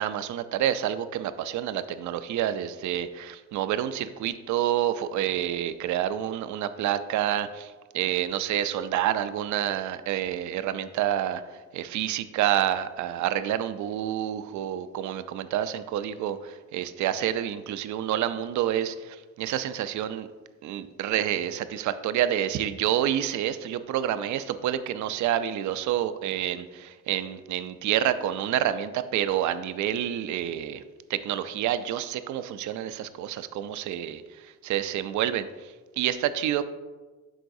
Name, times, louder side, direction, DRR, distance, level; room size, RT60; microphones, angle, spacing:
voice 1, 0.0-11.4 11.7-20.3 20.6-30.8 31.1-35.5 36.0-36.6, right 11 dB, 70° right, 12 dB, 0.5 m, -28 dB
11.0 x 3.9 x 2.6 m, 1.3 s
cardioid pair, 90°, 30 cm